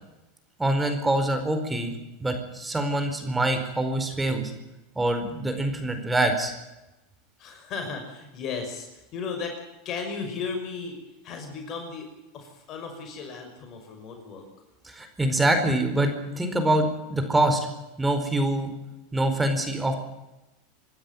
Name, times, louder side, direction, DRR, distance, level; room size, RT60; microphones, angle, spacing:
voice 1, 0.6-4.5 4.9-6.5 14.8-17.6 18.0-18.7 19.1-19.9, right 1 dB, 10° right, 6 dB, 4.7 m, -25 dB
voice 2, 7.4-9.6 9.8-11.0 11.2-12.1 12.3-14.5, left 5 dB, 45° left, 4 dB, 6.0 m, -35 dB
25.5 x 13.0 x 9.2 m, 0.97 s
hypercardioid pair, 95°, 0 cm